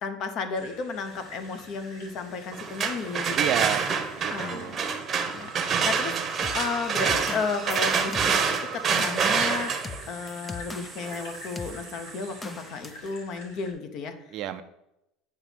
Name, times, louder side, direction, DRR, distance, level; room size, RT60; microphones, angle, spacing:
voice 1, 0.0-3.5 4.3-4.8 5.3-9.7 10.1-14.3, left 5 dB, 45° left, 8 dB, 0.9 m, -33 dB
sound 1, 0.5-13.7, left 2 dB, 80° left, 2.1 m, -48 dB
sound 2, 2.5-12.4, right 6 dB, 30° right, 0.9 m, -28 dB
voice 2, 3.3-4.8 14.3-14.6, right 10 dB, 50° right, 10 dB, 0.5 m, -31 dB
sound 3, 6.4-11.2 11.6-11.8 12.4-13.1, left 4 dB, 15° left, 0.4 m, -40 dB
8.7 x 3.0 x 6.1 m, 0.85 s
supercardioid pair, 140°, 0 cm